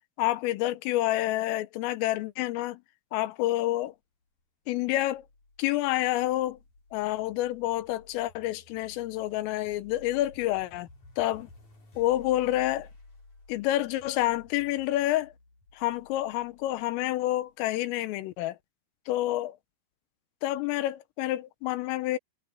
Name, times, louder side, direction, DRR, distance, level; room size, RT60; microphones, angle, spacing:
voice 1, 0.2-2.8 3.1-4.0 4.7-5.2 5.6-6.6 6.9-10.9 11.2-11.5 12.0-12.9 13.5-15.3 15.7-18.6 19.1-19.6 20.4-22.2, left 15 dB, 80° left, 3.6 m, -28 dB
sound 1, 4.7-17.9, left 2 dB, 35° left, 8.8 m, -55 dB
omnidirectional pair, 6.0 m